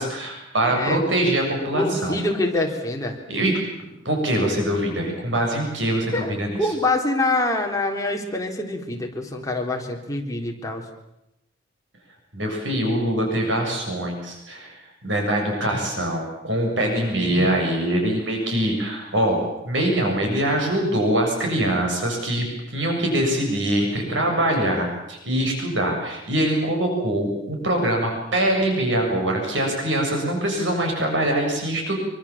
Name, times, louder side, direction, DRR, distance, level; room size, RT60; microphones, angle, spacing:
voice 1, 0.0-2.2 3.3-3.6 4.1-6.6 12.3-14.7 15.0-22.5 22.7-31.9, right 1 dB, 85° right, 1 dB, 7.2 m, -23 dB
voice 2, 0.7-1.0 1.7-3.2 6.1-10.8 17.3-17.5, left 2 dB, 20° left, 1 dB, 3.8 m, -25 dB
25.5 x 24.5 x 7.4 m, 0.85 s
head